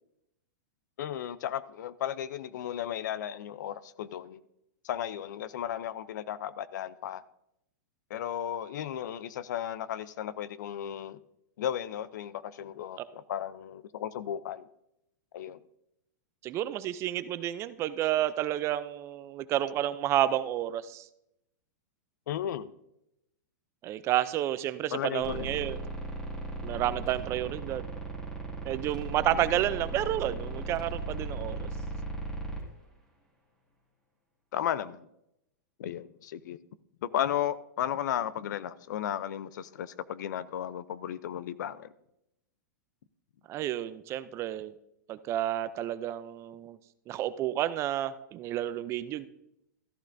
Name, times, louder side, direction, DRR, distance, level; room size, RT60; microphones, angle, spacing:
voice 1, 1.0-4.4 4.8-7.2 8.1-11.2 11.6-14.7 15.3-15.6 22.3-22.7 24.9-25.7 29.3-29.4 34.5-35.1 35.8-36.6 37.0-41.9, left 10 dB, 70° left, 0.5 m, -34 dB
voice 2, 16.4-21.1 23.8-25.8 26.6-27.8 28.6-31.7 43.5-44.7 45.1-46.8 47.1-49.3, right 12 dB, 30° right, 0.4 m, -30 dB
sound 1, 25.2-32.6, right 2 dB, 5° left, 2.2 m, -37 dB
14.0 x 11.5 x 2.6 m
hypercardioid pair, 140°, 10 cm